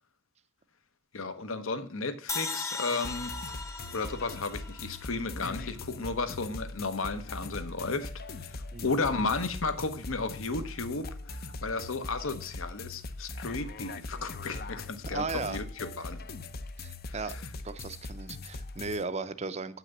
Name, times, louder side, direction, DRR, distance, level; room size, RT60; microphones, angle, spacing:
voice 1, 1.1-3.3 3.9-8.1 8.3-16.2 17.1-17.2, left 3 dB, 70° left, 1.1 m, -34 dB
sound 1, 2.3-5.5, left 4 dB, 15° left, 0.8 m, -38 dB
sound 2, 3.0-19.0, left 3 dB, 45° left, 0.6 m, -41 dB
voice 2, 15.1-15.6 16.8-17.3 17.6-19.8, right 4 dB, 30° right, 0.6 m, -36 dB
8.7 x 6.0 x 7.1 m
head